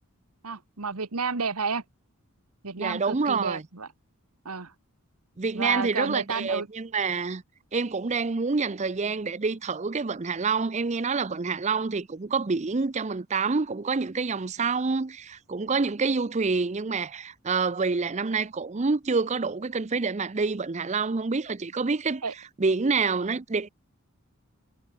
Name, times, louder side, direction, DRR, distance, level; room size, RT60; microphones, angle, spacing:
voice 1, 0.4-1.8 2.6-3.9 4.4-4.7 5.5-6.7 22.2-22.3, right 4 dB, 85° right, 1.6 m, -31 dB
voice 2, 2.8-3.6 5.4-7.4 7.7-22.2 22.6-23.7, right 4 dB, 30° right, 0.6 m, -27 dB
head